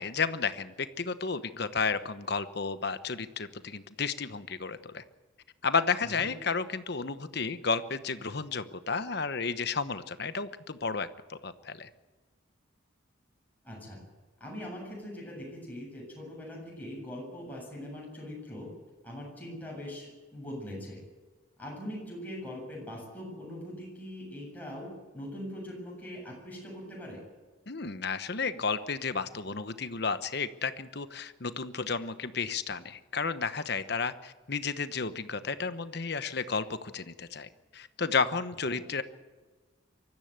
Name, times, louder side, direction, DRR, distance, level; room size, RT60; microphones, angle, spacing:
voice 1, 0.0-5.0 5.6-11.9 27.7-39.0, left 5 dB, 55° left, 12 dB, 1.1 m, -32 dB
voice 2, 13.6-14.0 14.4-18.7 19.0-21.0 21.6-27.2 38.7-38.8, left 1 dB, 10° left, -3 dB, 7.8 m, -42 dB
24.5 x 14.0 x 8.0 m, 1.3 s
head